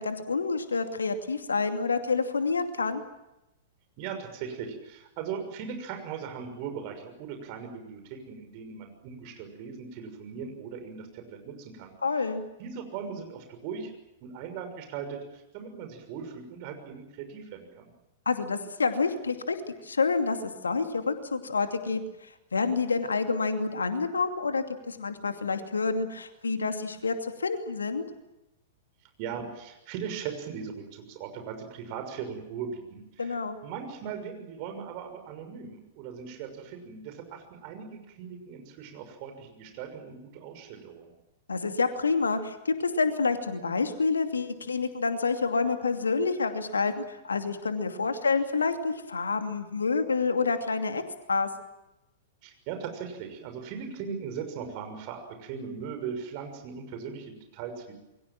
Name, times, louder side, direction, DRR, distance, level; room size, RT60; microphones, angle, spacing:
voice 1, 0.0-3.0 12.0-12.4 18.3-19.6 19.8-28.0 33.2-33.6 41.5-51.0 51.3-51.5, left 4 dB, 70° left, 7 dB, 2.6 m, -28 dB
voice 2, 4.0-11.9 12.6-13.9 14.2-17.9 29.2-41.1 52.4-58.0, right 7 dB, 40° right, 6 dB, 6.4 m, -39 dB
28.0 x 23.0 x 7.5 m, 0.93 s
figure-of-eight pair, 100°, 0 cm